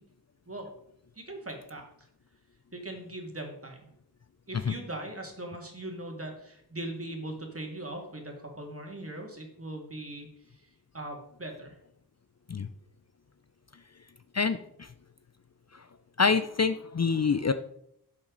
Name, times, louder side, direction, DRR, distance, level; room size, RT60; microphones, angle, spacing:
voice 1, 1.1-2.1 2.7-3.8 4.5-10.7 10.9-11.8, right 1 dB, 35° right, 2 dB, 2.3 m, -40 dB
voice 2, 14.3-14.9 15.7-15.8 16.2-17.5, left 5 dB, 40° left, 11 dB, 0.5 m, -26 dB
12.0 x 7.4 x 3.9 m, 0.75 s
wide cardioid pair, 70°, 40 cm